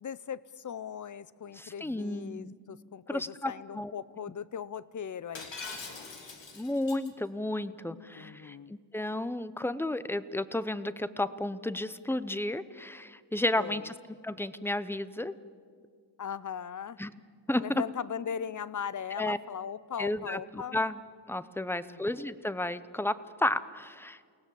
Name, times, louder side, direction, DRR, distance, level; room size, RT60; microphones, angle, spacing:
voice 1, 0.0-5.6 8.2-8.7 13.6-13.8 16.2-17.0 17.6-20.8 21.8-22.3, left 8 dB, 45° left, 18 dB, 0.6 m, -39 dB
voice 2, 1.5-2.5 3.1-3.9 6.5-14.0 14.2-15.3 17.0-17.1 17.5-17.8 19.2-19.4 20.0-21.0 21.3-24.3, left 1 dB, 5° left, 14 dB, 0.7 m, -32 dB
Shatter, 5.4-7.1, left 4 dB, 90° left, 2.9 m, -42 dB
30.0 x 18.5 x 7.6 m, 2.2 s
wide cardioid pair, 115°, 43 cm